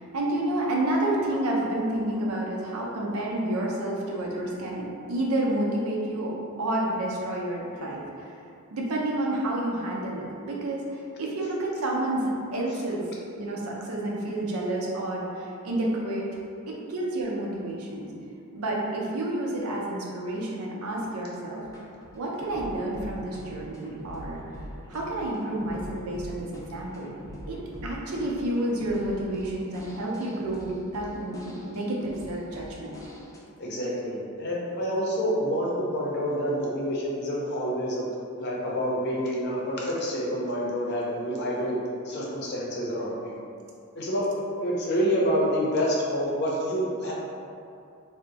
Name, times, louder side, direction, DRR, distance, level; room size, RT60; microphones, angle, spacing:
voice 1, 0.0-8.0 8.7-16.3 16.7-18.1 18.5-21.6 22.1-24.6 24.9-27.1 27.5-32.9, right 1 dB, 80° right, -3 dB, 0.6 m, -30 dB
sound 1, 21.6-33.4, equal, 15° left, 0.3 m, -44 dB
voice 2, 33.6-38.0 38.4-41.8 42.0-43.3 44.0-44.3 44.6-47.1, equal, 50° left, -4 dB, 0.6 m, -28 dB
2.6 x 2.1 x 3.9 m, 2.5 s
head